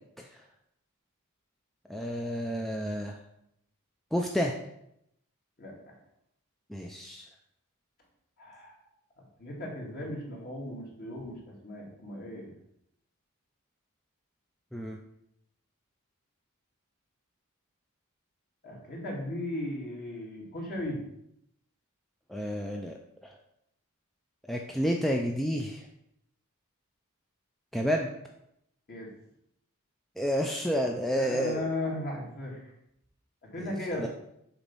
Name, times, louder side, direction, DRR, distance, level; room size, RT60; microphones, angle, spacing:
voice 1, 1.9-3.2 4.1-4.5 6.7-7.3 14.7-15.0 22.3-23.0 23.2-23.4 24.5-25.9 27.7-28.1 30.2-31.7 33.6-34.1, equal, ahead, 1 dB, 0.4 m, -30 dB
voice 2, 5.6-6.0 8.4-8.7 9.4-12.5 18.6-21.0 28.9-29.1 31.1-32.7 33.4-34.1, left 1 dB, 45° left, -2 dB, 2.1 m, -36 dB
7.1 x 4.1 x 5.4 m, 0.77 s
head